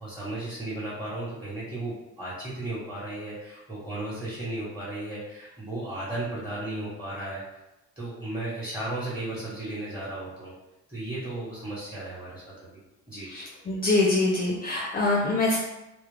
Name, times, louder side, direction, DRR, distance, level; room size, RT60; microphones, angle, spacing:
voice 1, 0.0-7.4 8.0-10.5 10.9-12.8 13.1-13.3, right 2 dB, 5° right, -11 dB, 1.0 m, -35 dB
voice 2, 13.3-15.6, left 2 dB, 30° left, -3 dB, 0.5 m, -24 dB
2.3 x 2.0 x 3.3 m, 0.95 s
cardioid pair, 90°, 30 cm